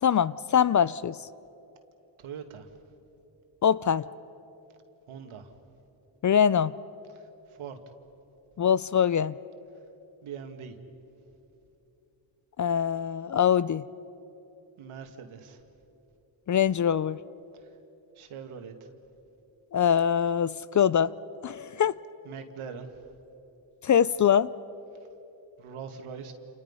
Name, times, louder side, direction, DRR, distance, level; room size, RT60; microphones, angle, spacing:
voice 1, 0.0-1.2 3.6-4.1 6.2-6.7 8.6-9.3 12.6-13.8 16.5-17.2 19.7-21.1 21.4-22.0 23.8-24.5, left 8 dB, 40° left, 0.5 m, -23 dB
voice 2, 2.2-2.7 5.1-5.5 7.6-7.8 10.2-10.7 14.8-15.6 18.2-18.7 22.3-22.9 25.6-26.3, right 7 dB, 80° right, 2.4 m, -41 dB
29.0 x 28.5 x 5.6 m
cardioid pair, 90°, 49 cm